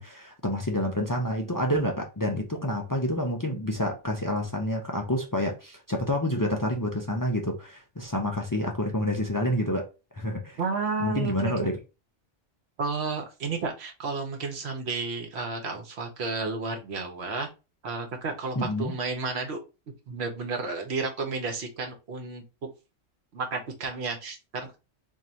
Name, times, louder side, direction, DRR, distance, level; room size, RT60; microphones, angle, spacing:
voice 1, 0.0-9.9 10.1-10.6 11.0-11.7 18.6-18.9, left 1 dB, 30° left, 0.3 m, -28 dB
voice 2, 10.6-11.7 12.8-17.5 17.8-19.6 20.1-22.7 23.3-24.7, right 4 dB, 65° right, 1.1 m, -32 dB
2.7 x 2.6 x 4.2 m
omnidirectional pair, 1.2 m